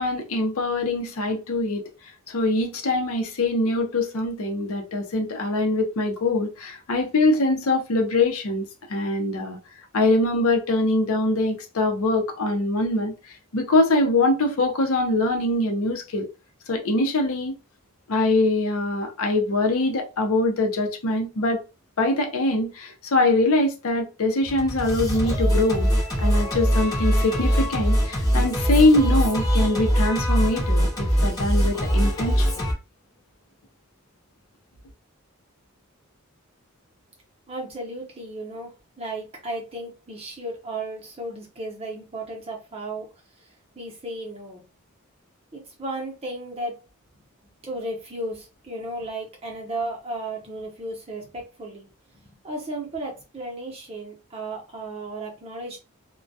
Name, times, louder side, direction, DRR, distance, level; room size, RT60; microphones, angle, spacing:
voice 1, 0.0-1.9 2.3-8.6 8.9-9.6 9.9-13.1 13.5-16.3 16.7-17.5 18.1-21.6 22.0-25.9 26.2-32.7, left 2 dB, 70° left, 0.6 m, -23 dB
Singing, 24.4-32.7, equal, 15° left, 0.7 m, -22 dB
voice 2, 37.5-43.1 43.4-44.6 45.5-46.8 47.1-47.2 47.6-55.8, right 1 dB, 25° right, 0.7 m, -34 dB
2.2 x 2.2 x 2.6 m
head